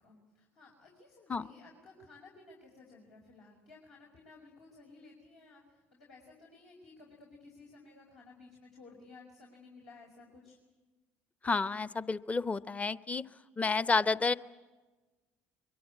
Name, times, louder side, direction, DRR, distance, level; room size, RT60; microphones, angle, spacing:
voice 1, 0.0-10.6, left 3 dB, 75° left, -3 dB, 5.2 m, -56 dB
voice 2, 11.4-13.2 13.6-14.3, left 4 dB, 25° left, 15 dB, 0.8 m, -30 dB
23.0 x 22.5 x 8.5 m, 1.2 s
hypercardioid pair, 65°, 6 cm